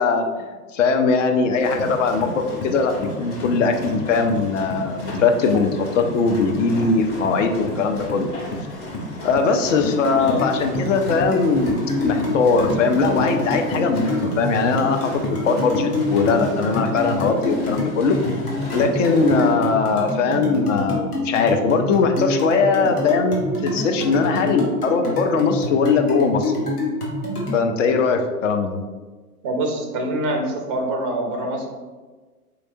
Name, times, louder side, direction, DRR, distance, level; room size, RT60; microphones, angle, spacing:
voice 1, 0.0-8.3 9.2-18.2 18.7-26.5 27.5-28.8, left 4 dB, 55° left, 6 dB, 0.5 m, -20 dB
sound 1, 1.6-19.5, left 2 dB, 20° left, 0.8 m, -32 dB
sound 2, 9.8-27.6, left 2 dB, 75° left, 1.2 m, -27 dB
voice 2, 29.4-31.7, right 1 dB, 20° right, 2 dB, 0.4 m, -25 dB
3.8 x 3.2 x 2.5 m, 1.3 s
figure-of-eight pair, 95°, 46 cm